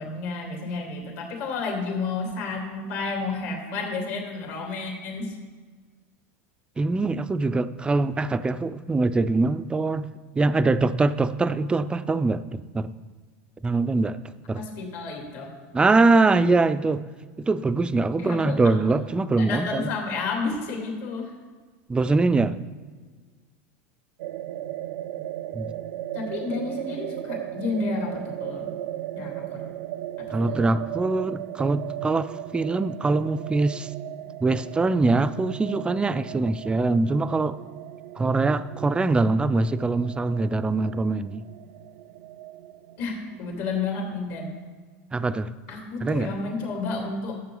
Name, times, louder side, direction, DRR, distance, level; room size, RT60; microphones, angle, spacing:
voice 1, 0.0-5.3 14.5-15.5 18.2-19.0 19.4-21.3 26.1-28.7 29.1-29.6 30.2-30.7 43.0-44.6 45.7-47.4, left 4 dB, 65° left, 0 dB, 2.7 m, -31 dB
voice 2, 6.8-10.1 10.3-12.9 13.6-14.2 14.5-14.6 15.7-17.1 17.4-19.9 21.9-22.6 25.5-25.7 30.3-33.9 34.4-37.6 38.2-41.4 45.1-45.5 46.0-46.3, right 3 dB, 10° right, 13 dB, 0.4 m, -23 dB
sound 1, 24.2-43.8, right 13 dB, 75° right, 0.4 m, -37 dB
12.0 x 7.6 x 3.9 m, 1.5 s
supercardioid pair, 120°, 8 cm